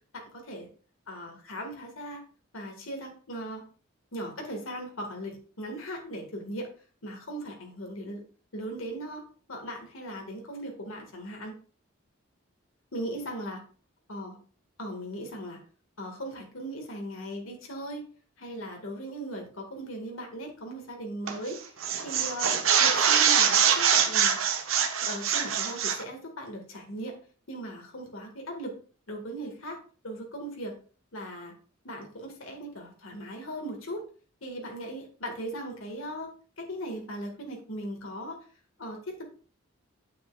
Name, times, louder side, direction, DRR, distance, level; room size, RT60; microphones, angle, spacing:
voice 1, 0.1-0.7 1.1-2.2 2.5-3.6 4.1-6.7 7.0-8.2 8.5-11.5 12.9-13.6 14.1-14.4 14.8-15.6 16.0-18.0 18.4-21.6 22.0-24.4 25.0-27.2 27.5-28.8 29.1-29.8 30.0-30.7 31.1-31.5 31.8-34.0 34.4-36.3 36.6-38.4 38.8-39.2, right 1 dB, 75° left, 1 dB, 1.9 m, -38 dB
sound 1, 21.3-21.5 21.8-26.0, right 7 dB, 75° right, 1.0 m, -24 dB
8.3 x 7.0 x 2.4 m, 0.39 s
head